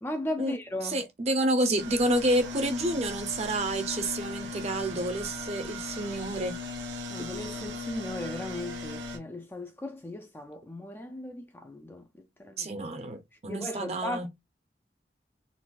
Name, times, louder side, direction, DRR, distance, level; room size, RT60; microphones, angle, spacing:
voice 1, 0.0-1.0 7.1-12.0 12.4-12.7 13.5-14.3, left 1 dB, 10° left, 0.3 m, -37 dB
voice 2, 0.8-6.5 12.6-14.3, right 1 dB, 35° right, 0.6 m, -29 dB
sound 1, 1.8-9.2, left 2 dB, 90° right, 1.0 m, -38 dB
4.0 x 2.4 x 2.3 m
head